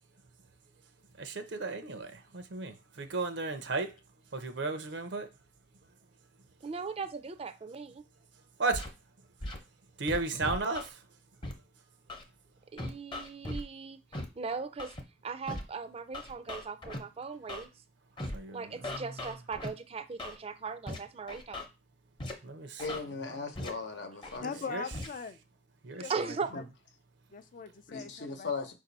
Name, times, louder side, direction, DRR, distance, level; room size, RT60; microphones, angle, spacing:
voice 1, 1.2-3.9 4.3-5.3 8.6-8.9 10.0-10.9 18.3-19.1 22.4-22.8 23.3-23.5 24.4-24.9 25.8-26.3, right 3 dB, 80° right, 0.6 m, -35 dB
voice 2, 6.6-8.0 12.7-14.0 14.4-14.9 15.2-17.7 18.5-21.7 26.1-26.5, right 5 dB, 35° right, 0.4 m, -38 dB
Scratching (performance technique), 8.7-8.9 9.4-9.6 10.1-10.9 11.4-11.5 12.1-12.2 12.8-13.6 14.1-14.3 14.8-15.0 15.5-15.6 16.1-17.0 17.5-17.6 18.2-18.4 18.8-19.7 20.2-20.4 20.9-21.0 21.3-21.7 22.2-22.3 22.8-23.0 23.6-23.7 24.2-24.4 24.9-25.1, left 1 dB, 30° left, 0.8 m, -38 dB
voice 3, 22.8-24.6 26.5-26.6 27.9-28.7, left 4 dB, 75° left, 0.9 m, -38 dB
voice 4, 24.4-25.4 26.0-26.6 27.3-28.5, left 5 dB, 45° left, 0.4 m, -41 dB
5.0 x 2.6 x 4.0 m
head